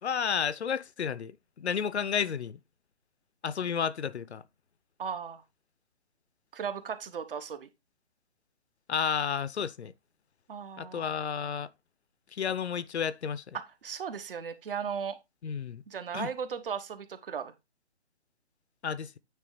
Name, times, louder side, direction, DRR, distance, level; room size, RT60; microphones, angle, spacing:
voice 1, 0.0-2.6 3.4-4.4 8.9-9.9 10.8-11.7 12.3-13.6 15.4-15.8 16.1-16.3 18.8-19.2, left 7 dB, 75° left, 0.8 m, -32 dB
voice 2, 5.0-5.4 6.5-7.7 10.5-11.1 13.5-15.2 15.9-17.5, right 7 dB, 55° right, 1.3 m, -36 dB
9.1 x 3.3 x 5.0 m
hypercardioid pair, 150°, 33 cm